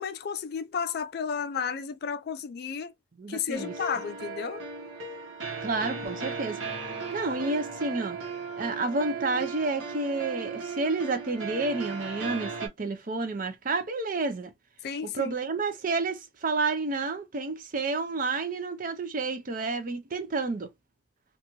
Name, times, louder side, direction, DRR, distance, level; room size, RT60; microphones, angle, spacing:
voice 1, 0.0-2.9 3.3-4.6 14.8-15.3, left 6 dB, 50° left, 0.3 m, -32 dB
voice 2, 3.2-3.7 5.6-6.6 7.1-8.2 8.6-14.5 15.1-20.7, right 3 dB, 45° right, 0.5 m, -30 dB
sound 1, 3.5-12.7, right 4 dB, 80° right, 0.9 m, -36 dB
2.6 x 2.3 x 3.0 m
head